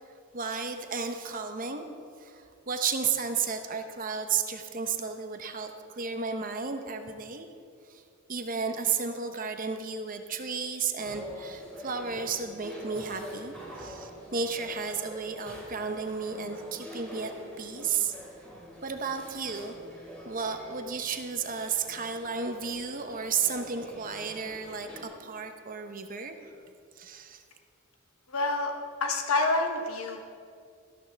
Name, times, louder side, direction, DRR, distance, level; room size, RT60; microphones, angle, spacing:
voice 1, 0.3-1.9 2.2-7.5 7.9-8.0 8.3-17.3 17.6-18.2 18.8-19.7 20.2-26.6 27.0-27.4, right 5 dB, 40° right, 6 dB, 0.8 m, -33 dB
sound 1, 11.0-25.0, equal, 5° left, 2.6 m, -46 dB
voice 2, 28.3-28.7 29.0-30.2, left 3 dB, 85° left, 3 dB, 1.0 m, -27 dB
13.5 x 12.5 x 3.4 m, 2.3 s
head